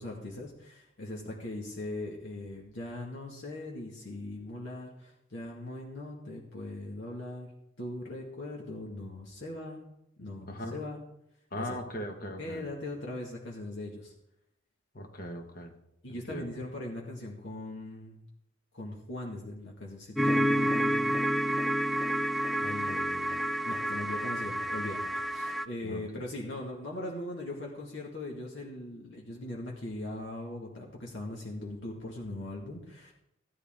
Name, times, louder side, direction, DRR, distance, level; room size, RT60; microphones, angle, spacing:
voice 1, 0.0-7.5 7.8-9.8 10.2-11.0 11.5-11.8 12.4-14.1 16.0-18.2 18.7-21.0 22.6-23.4 23.7-33.1, left 1 dB, 70° left, -2 dB, 2.0 m, -40 dB
voice 2, 10.5-10.8 11.5-12.6 14.9-15.7 16.1-16.4 25.8-26.0, equal, 45° left, 4 dB, 1.6 m, -39 dB
sound 1, 20.2-25.6, equal, ahead, 0.4 m, -29 dB
15.0 x 11.5 x 3.8 m, 0.82 s
head